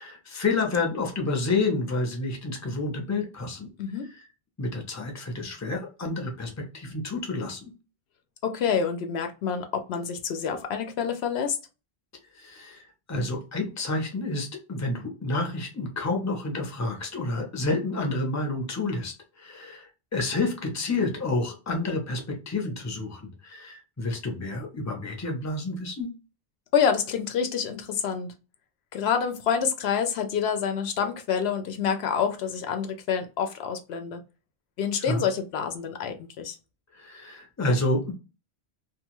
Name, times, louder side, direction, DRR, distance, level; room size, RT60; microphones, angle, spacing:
voice 1, 0.0-3.7 4.6-7.7 12.4-12.8 13.1-26.1 35.1-35.2 37.0-38.1, left 2 dB, 20° left, 2 dB, 0.6 m, -29 dB
voice 2, 8.4-11.6 26.7-28.3 28.9-34.2 34.8-36.6, left 7 dB, 75° left, 6 dB, 0.8 m, -27 dB
2.4 x 2.3 x 2.9 m, 0.30 s
omnidirectional pair, 1.1 m